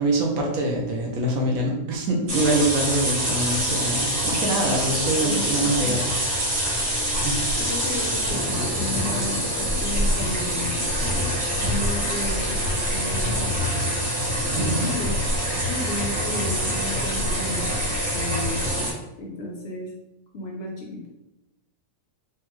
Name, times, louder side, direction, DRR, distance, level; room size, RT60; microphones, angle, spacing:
voice 1, 0.0-7.4 11.0-11.1 14.6-14.9, right 1 dB, 70° right, -1 dB, 1.1 m, -25 dB
sound 1, 2.3-18.9, equal, 85° right, 1.6 m, -25 dB
voice 2, 5.2-6.0 7.6-10.9 11.4-13.7 14.5-15.1 15.7-17.7 18.1-18.6 19.2-19.9 20.3-21.1, left 1 dB, 65° left, -1 dB, 0.6 m, -33 dB
3.5 x 2.2 x 3.0 m, 0.93 s
omnidirectional pair, 1.7 m